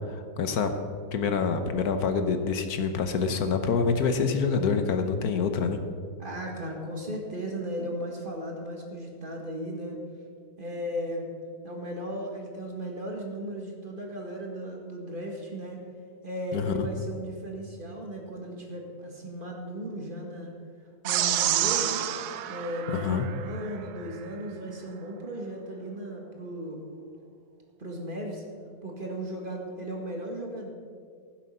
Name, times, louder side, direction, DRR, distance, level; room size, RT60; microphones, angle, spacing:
voice 1, 0.1-0.7 1.1-5.8 16.5-16.9 22.9-23.3, left 5 dB, 70° left, 7 dB, 1.3 m, -26 dB
voice 2, 6.2-10.0 10.6-11.3 11.6-15.8 16.2-20.5 21.0-22.1 22.5-26.8 27.8-28.4 28.8-30.7, equal, 35° right, 0 dB, 1.8 m, -36 dB
sound 1, 21.1-23.7, right 12 dB, 85° right, 1.2 m, -28 dB
15.5 x 7.5 x 5.4 m, 2.2 s
omnidirectional pair, 1.7 m